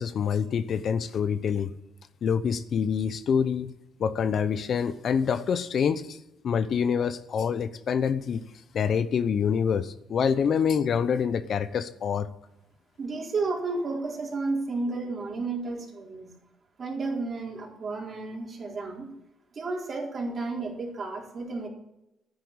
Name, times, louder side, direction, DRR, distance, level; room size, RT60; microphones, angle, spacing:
voice 1, 0.0-1.7 2.2-3.7 4.0-6.2 6.4-8.4 8.7-12.3, left 7 dB, 60° left, 13 dB, 0.8 m, -26 dB
voice 2, 13.0-16.3 16.8-19.1 19.5-21.7, right 3 dB, 45° right, -1 dB, 4.3 m, -32 dB
12.0 x 9.8 x 8.8 m, 0.87 s
cardioid pair, 90°, 0 cm